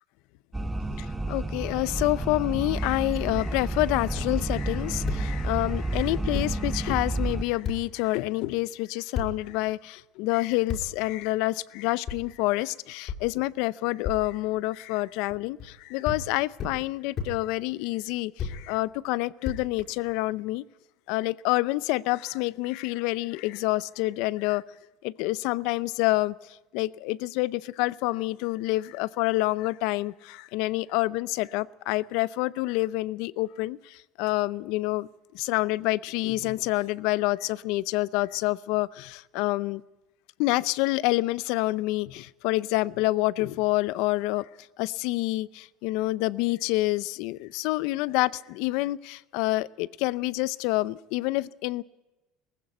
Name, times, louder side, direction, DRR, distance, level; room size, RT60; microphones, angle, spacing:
sound 1, 0.5-7.4, right 2 dB, 10° right, 1.1 m, -30 dB
voice 1, 1.0-20.6 21.1-24.6 25.0-26.3 26.7-35.1 35.3-39.8 40.4-44.5 44.8-51.8, left 19 dB, 75° left, 0.6 m, -27 dB
sound 2, 4.1-4.3 5.0-5.2 6.0-6.1 6.3-6.5 7.6-7.8 9.1-9.3 10.7-10.8 12.1-12.2 13.1-13.2 14.0-14.2 15.3-15.7 16.0-16.2 16.6-16.7 17.2-17.3 18.4-18.5 19.4-20.1, left 6 dB, 50° left, 5.3 m, -32 dB
19.5 x 15.5 x 9.3 m
supercardioid pair, 120°, 0 cm